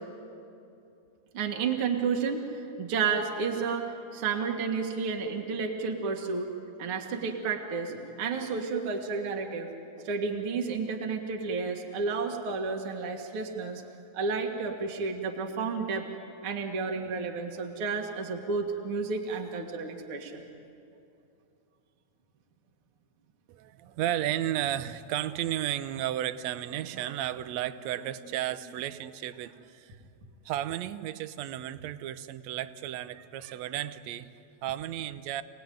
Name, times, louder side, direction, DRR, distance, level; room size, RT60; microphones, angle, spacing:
voice 1, 1.3-6.5 6.8-9.7 10.0-13.8 14.1-16.0 16.4-20.5, right 5 dB, 50° right, 2 dB, 2.5 m, -31 dB
voice 2, 23.5-30.0 30.5-35.4, right 12 dB, 70° right, 12 dB, 1.9 m, -33 dB
28.5 x 19.0 x 9.3 m, 2.6 s
omnidirectional pair, 3.5 m